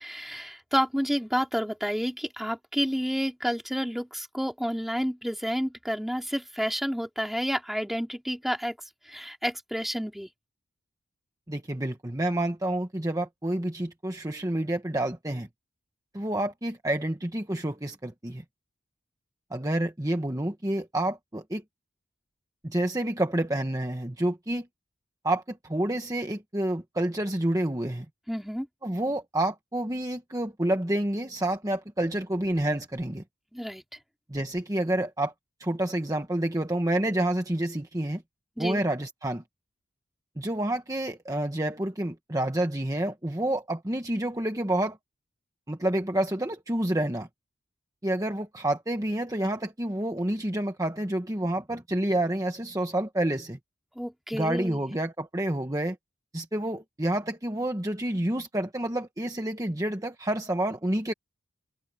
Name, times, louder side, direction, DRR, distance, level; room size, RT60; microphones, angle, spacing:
voice 1, 0.0-8.8 9.1-10.3 28.3-28.7 33.5-33.8 38.6-38.8 54.0-54.8, equal, ahead, 3.3 m, -30 dB
voice 2, 11.5-15.5 16.1-18.4 19.5-21.6 22.6-24.7 25.2-28.0 28.8-33.2 34.3-35.3 35.6-38.2 38.6-39.4 40.4-45.0 45.7-47.3 48.0-53.6 54.3-56.0 56.3-61.1, right 1 dB, 15° right, 1.2 m, -28 dB
head